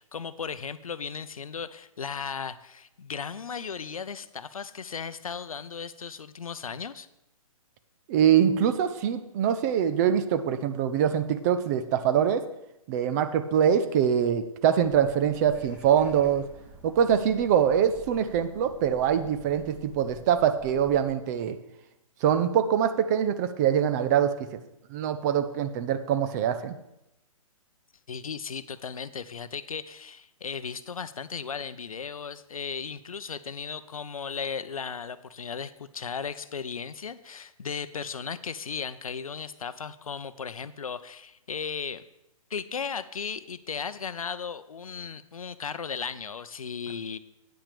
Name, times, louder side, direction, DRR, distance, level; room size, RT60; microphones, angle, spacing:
voice 1, 0.0-7.1 28.1-42.0 42.5-47.2, left 6 dB, 70° left, 14 dB, 0.6 m, -36 dB
voice 2, 8.1-12.4 12.9-16.4 16.8-21.6 22.2-24.6 24.9-26.8, right 9 dB, 30° right, 10 dB, 0.6 m, -24 dB
sound 1, 14.8-21.1, right 1 dB, 5° right, 1.5 m, -50 dB
9.1 x 5.8 x 6.8 m, 0.87 s
figure-of-eight pair, 130°, 18 cm